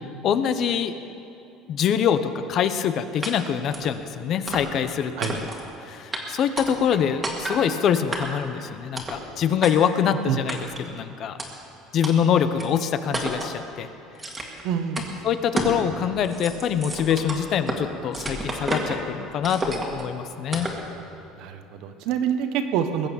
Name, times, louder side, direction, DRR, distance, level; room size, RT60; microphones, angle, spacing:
voice 1, 0.2-0.9 1.7-5.5 5.8-11.4 11.9-13.9 15.2-20.7, left 8 dB, 40° left, 11 dB, 0.7 m, -24 dB
sound 1, 3.2-3.3 3.7-3.9 4.5-4.9 5.2-5.7 6.1-6.2 6.6-7.0 7.2-7.6 8.1-8.5 9.0-9.2 9.6-9.7 10.5-10.9 11.4-11.5 12.0-12.1 12.6-12.7 13.1-13.5 14.2-14.6 15.0-15.1 15.6-15.8 16.1-17.8 18.1-19.0 19.4-20.0 20.5-20.8, right 1 dB, 10° right, 1.8 m, -30 dB
voice 2, 14.6-15.1 21.4-23.1, right 8 dB, 60° right, 8 dB, 1.2 m, -26 dB
20.5 x 8.4 x 7.1 m, 2.8 s
cardioid pair, 165°, 0 cm